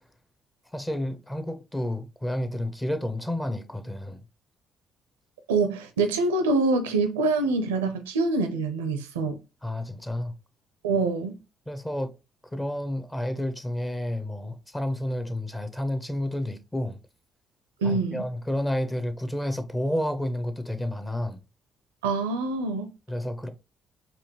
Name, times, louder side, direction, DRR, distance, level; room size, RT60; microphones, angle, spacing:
voice 1, 0.7-4.2 9.6-10.3 11.7-12.1 12.5-17.0 17.8-21.4 23.1-23.5, left 1 dB, 15° left, 0.9 m, -30 dB
voice 2, 5.5-9.4 10.8-11.4 17.8-18.3 22.0-22.9, right 3 dB, 90° right, 0.5 m, -25 dB
4.3 x 2.6 x 2.9 m
hypercardioid pair, 45°, 0 cm